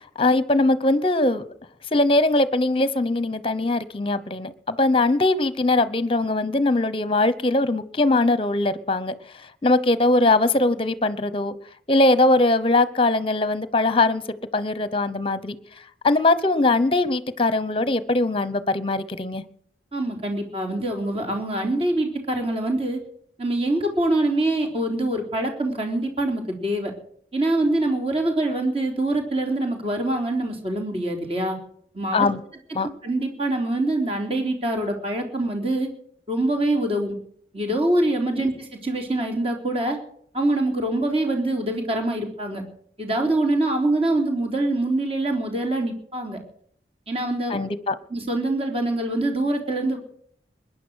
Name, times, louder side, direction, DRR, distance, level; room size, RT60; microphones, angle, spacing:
voice 1, 0.2-1.5 1.9-9.1 9.6-11.5 11.9-14.2 14.5-15.6 16.0-19.4 32.1-32.4 32.7-32.9 47.5-48.0, left 2 dB, 30° left, 0.9 m, -21 dB
voice 2, 19.9-23.0 23.4-26.9 27.3-31.6 31.9-32.3 33.0-35.9 36.3-37.2 37.5-40.0 40.3-42.6 43.0-46.4 47.1-47.6 48.1-50.0, right 1 dB, 35° right, 3.7 m, -24 dB
21.5 x 10.0 x 6.4 m
head